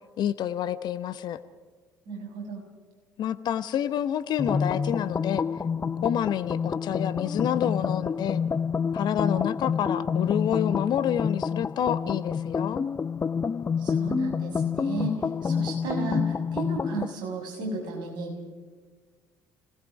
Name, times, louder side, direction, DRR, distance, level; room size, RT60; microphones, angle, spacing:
voice 1, 0.2-1.4 3.2-5.4 6.0-8.4 8.9-12.8, left 10 dB, 50° left, 14 dB, 0.9 m, -28 dB
voice 2, 2.1-2.6 13.8-18.5, right 2 dB, 55° right, 1 dB, 6.3 m, -34 dB
sound 1, 4.4-17.1, left 6 dB, 25° left, 0.5 m, -28 dB
29.0 x 18.5 x 5.0 m, 1.5 s
figure-of-eight pair, 55°, 9 cm